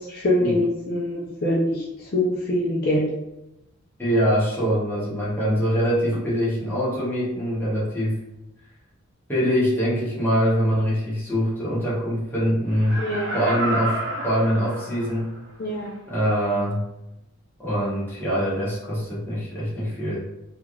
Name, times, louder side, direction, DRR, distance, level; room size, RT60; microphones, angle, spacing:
voice 1, 0.1-1.8 2.1-3.0 13.0-13.4 15.6-15.9, left 1 dB, 45° left, -4 dB, 0.5 m, -24 dB
voice 2, 4.0-8.2 9.3-13.0 13.3-15.3 16.1-16.8 17.6-20.2, equal, 10° left, -8 dB, 0.9 m, -23 dB
Laughter, 12.7-15.4 15.8-15.9, right 1 dB, 50° right, 0.6 m, -30 dB
3.2 x 2.4 x 2.3 m, 0.88 s
head